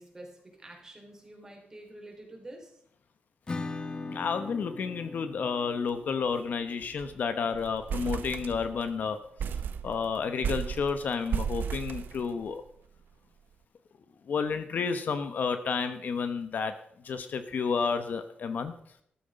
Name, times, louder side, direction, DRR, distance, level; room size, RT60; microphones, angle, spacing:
voice 1, 0.0-2.8, right 1 dB, 15° right, 0 dB, 4.2 m, -48 dB
Acoustic guitar / Strum, 3.5-8.9, left 3 dB, 25° left, 1.2 m, -42 dB
voice 2, 4.1-9.2 9.8-12.6 14.3-16.7 17.0-18.7, left 5 dB, 55° left, 10 dB, 1.0 m, -31 dB
sound 1, 5.9-6.1 6.4-6.5 6.8-7.2 7.5-8.9 9.4-12.7, right 7 dB, 70° right, 0.9 m, -34 dB
13.5 x 13.0 x 5.2 m, 0.67 s
wide cardioid pair, 155°, 3 cm